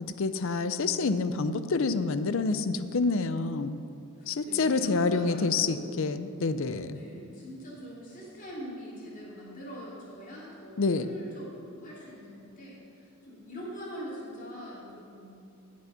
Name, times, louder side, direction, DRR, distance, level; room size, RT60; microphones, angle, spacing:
voice 1, 0.2-3.8 4.3-7.0 10.8-11.1, left 4 dB, 60° left, 12 dB, 0.5 m, -27 dB
voice 2, 4.2-6.1 6.9-15.3, equal, 35° left, -5 dB, 2.9 m, -43 dB
16.0 x 6.2 x 5.7 m, 2.6 s
head